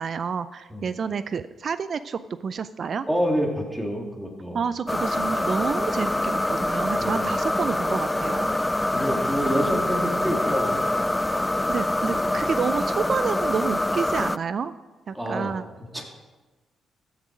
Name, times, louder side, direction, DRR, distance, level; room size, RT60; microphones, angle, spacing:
voice 1, 0.0-3.1 4.5-8.5 11.7-14.7 15.1-15.6, right 6 dB, 55° right, 14 dB, 0.4 m, -29 dB
voice 2, 3.1-4.6 7.0-7.3 8.9-10.8 15.1-15.5 15.9-16.0, equal, 10° right, 0 dB, 3.1 m, -27 dB
sound 1, 4.9-14.4, left 1 dB, 15° left, 0.4 m, -25 dB
14.5 x 7.2 x 5.0 m, 1.2 s
hypercardioid pair, 45°, 0 cm